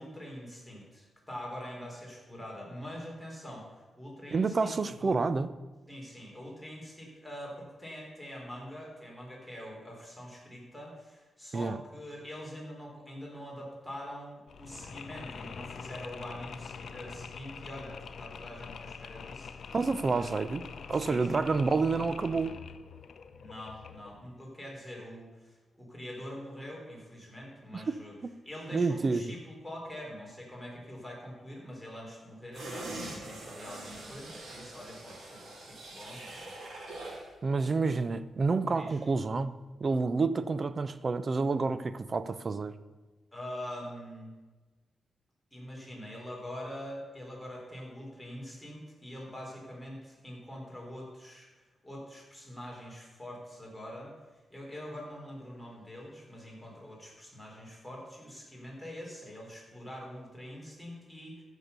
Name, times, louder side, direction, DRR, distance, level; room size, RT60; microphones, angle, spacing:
voice 1, 0.0-4.7 5.0-5.2 5.9-20.3 20.9-21.4 23.4-28.1 28.4-36.5 38.8-39.0 43.3-44.3 45.5-54.1 54.5-61.4, equal, 5° left, 3.8 m, -44 dB
voice 2, 4.3-5.5 11.5-11.8 19.7-22.6 27.7-27.8 28.2-28.3 28.7-29.3 37.4-39.5 39.8-42.7, right 4 dB, 40° right, 0.6 m, -29 dB
Mechanisms, 14.5-24.2, left 6 dB, 70° left, 0.7 m, -45 dB
sound 1, 32.5-37.3 37.6-37.8, right 2 dB, 80° right, 4.2 m, -43 dB
14.0 x 6.4 x 6.8 m
cardioid pair, 90°, 0 cm